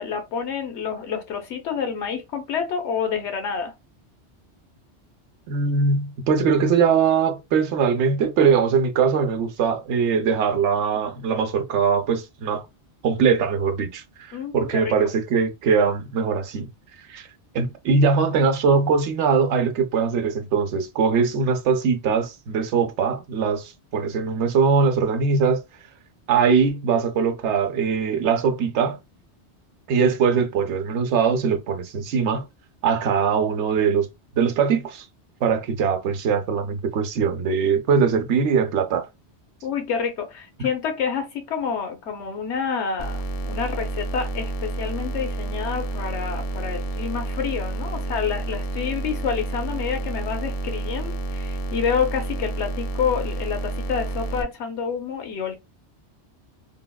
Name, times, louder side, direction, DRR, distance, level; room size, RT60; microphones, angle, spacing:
voice 1, 0.0-3.7 14.3-14.9 39.6-43.2 43.4-55.5, left 6 dB, 80° left, 1.0 m, -28 dB
voice 2, 5.5-12.6 13.0-16.7 17.1-17.3 17.5-25.6 26.3-29.0 29.9-32.5 32.8-34.1 34.3-35.1 35.4-39.1 40.6-40.7, right 5 dB, 80° right, 0.9 m, -21 dB
sound 1, 43.0-54.4, right 2 dB, 60° left, 0.4 m, -29 dB
3.4 x 2.2 x 2.2 m
omnidirectional pair, 1.2 m